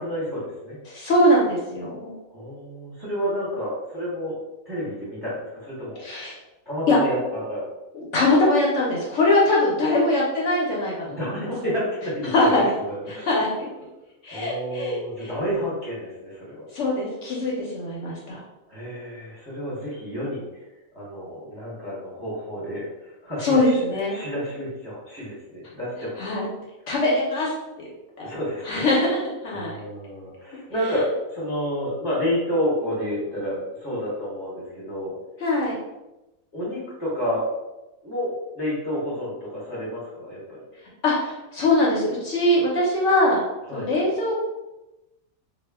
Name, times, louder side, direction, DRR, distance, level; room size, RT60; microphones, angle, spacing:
voice 1, 0.0-0.8 2.3-4.3 4.7-6.0 6.7-7.7 11.0-13.3 14.3-16.7 18.7-20.6 20.9-23.8 24.1-26.1 28.2-28.9 29.5-35.1 36.5-37.4 38.0-40.6 43.7-43.9, equal, 20° right, -7 dB, 0.6 m, -30 dB
voice 2, 0.9-2.1 6.0-6.3 6.9-7.0 7.9-11.0 12.3-12.7 13.2-13.7 14.2-15.3 16.7-18.4 23.4-24.2 26.2-26.5 26.9-27.9 28.2-28.3 28.7-29.8 35.4-35.8 41.0-43.4 43.7-44.5, left 1 dB, 65° left, -4 dB, 0.8 m, -22 dB
2.3 x 2.1 x 3.3 m, 1.0 s
omnidirectional pair, 1.5 m